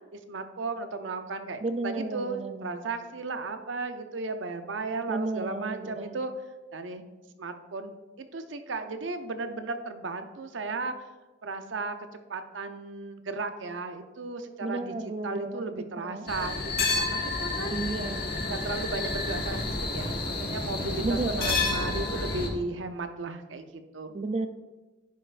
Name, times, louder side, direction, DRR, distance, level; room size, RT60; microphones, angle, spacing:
voice 1, 0.1-6.3 6.7-7.0 7.4-7.9 8.2-10.9 11.4-17.9 18.5-24.1, right 3 dB, 90° right, 8 dB, 0.7 m, -35 dB
voice 2, 1.6-2.8 5.1-6.2 14.6-15.6 16.0-16.3 17.7-18.3 21.0-21.6 24.1-24.5, right 2 dB, 35° right, 10 dB, 0.4 m, -32 dB
sound 1, 16.3-22.5, left 3 dB, 55° left, 1.3 m, -30 dB
10.0 x 5.5 x 2.5 m, 1.2 s
head